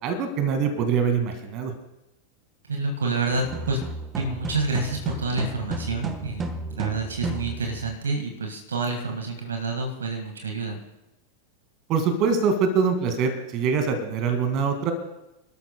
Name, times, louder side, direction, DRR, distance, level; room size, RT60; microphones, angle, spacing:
voice 1, 0.0-1.7 11.9-14.9, right 5 dB, 40° right, 7 dB, 2.0 m, -24 dB
voice 2, 2.7-3.8 4.1-10.8, right 3 dB, 70° right, 3 dB, 1.8 m, -28 dB
sound 1, 3.3-8.0, right 3 dB, 20° right, 1.1 m, -33 dB
28.5 x 12.5 x 2.2 m, 0.92 s
figure-of-eight pair, 90°, 0 cm